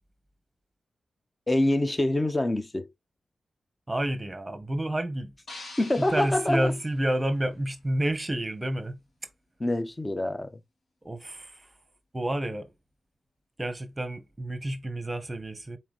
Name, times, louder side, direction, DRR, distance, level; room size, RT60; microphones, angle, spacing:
voice 1, 1.5-2.9 5.8-6.7 9.6-10.5, left 1 dB, 15° left, 0.6 m, -25 dB
voice 2, 3.9-5.3 6.0-8.9 11.0-11.5 12.1-12.7 13.6-15.8, right 1 dB, 15° right, 0.9 m, -29 dB
sound 1, 5.5-7.8, left 2 dB, 65° left, 2.1 m, -47 dB
4.3 x 3.1 x 3.9 m
wide cardioid pair, 155°, 0 cm